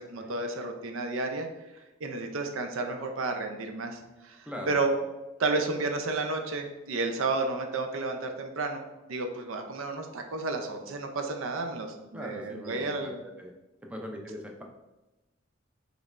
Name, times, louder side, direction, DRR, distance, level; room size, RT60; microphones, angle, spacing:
voice 1, 0.1-1.5 2.0-4.9 5.4-13.2, right 3 dB, 90° right, 5 dB, 0.5 m, -32 dB
voice 2, 4.5-4.8 12.1-13.1 13.4-13.5 13.9-14.6, equal, 5° right, 1 dB, 0.5 m, -40 dB
5.1 x 3.2 x 2.5 m, 1.1 s
head